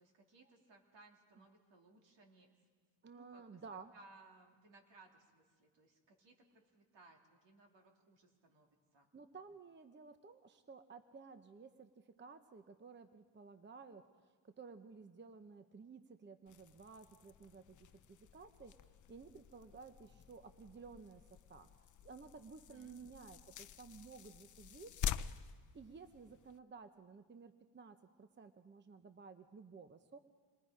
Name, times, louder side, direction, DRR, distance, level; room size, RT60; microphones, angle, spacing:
voice 1, 0.0-2.5 3.1-3.6 3.9-9.1 22.7-23.0, right 3 dB, 70° right, 2 dB, 3.1 m, -64 dB
voice 2, 3.0-3.9 9.1-21.7 22.0-25.0 25.7-30.2, right 5 dB, 25° right, 9 dB, 0.8 m, -55 dB
sound 1, 16.5-26.6, left 9 dB, 40° left, 0.6 m, -48 dB
27.0 x 21.5 x 5.1 m, 1.5 s
cardioid pair, 105°, 46 cm